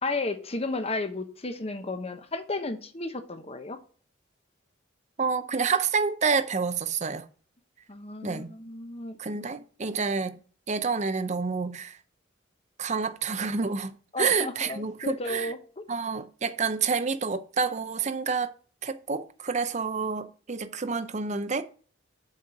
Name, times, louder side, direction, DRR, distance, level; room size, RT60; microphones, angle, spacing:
voice 1, 0.0-3.8 7.9-9.2 14.1-15.8, left 2 dB, 30° left, 1.0 m, -33 dB
voice 2, 5.2-7.3 8.2-8.5 9.2-10.4 10.7-12.0 12.8-15.5 15.9-18.5 18.8-21.6, right 5 dB, 35° right, 0.6 m, -28 dB
7.3 x 4.4 x 6.4 m
head